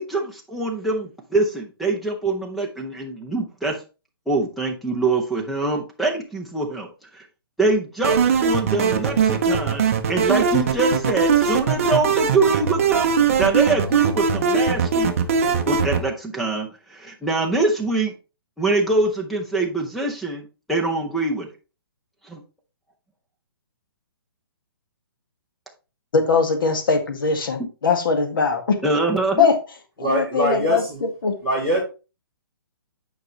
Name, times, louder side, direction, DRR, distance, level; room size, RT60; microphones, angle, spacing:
voice 1, 0.0-3.8 4.3-6.9 7.1-7.2 7.6-9.8 10.1-13.1 13.3-15.1 15.7-18.1 18.6-21.5 22.2-22.4 28.8-29.5, right 2 dB, ahead, 1 dB, 0.6 m, -24 dB
sound 1, 8.0-16.0, right 6 dB, 35° right, 0.8 m, -20 dB
voice 2, 26.1-28.8 29.4-29.5 30.0-31.4, left 5 dB, 60° left, 5 dB, 1.9 m, -21 dB
voice 3, 30.0-31.0 31.4-31.8, right 1 dB, 20° left, -5 dB, 3.0 m, -23 dB
9.5 x 5.2 x 3.2 m, 0.32 s
hypercardioid pair, 175°, 13 cm